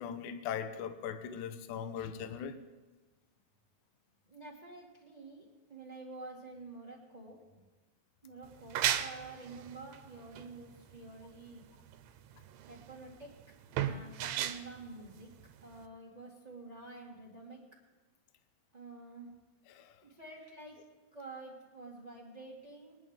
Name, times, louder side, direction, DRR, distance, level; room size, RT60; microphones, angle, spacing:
voice 1, 0.0-2.6 19.7-20.0, left 8 dB, 75° left, 2.1 m, -40 dB
voice 2, 4.3-7.4 8.2-11.6 12.6-13.3 13.8-15.3 15.6-17.6 18.7-19.3 20.0-20.8 21.1-23.0, right 3 dB, 25° right, 0.8 m, -49 dB
sound 1, 8.4-15.9, right 10 dB, 85° right, 2.3 m, -36 dB
21.0 x 10.5 x 3.6 m
omnidirectional pair, 3.9 m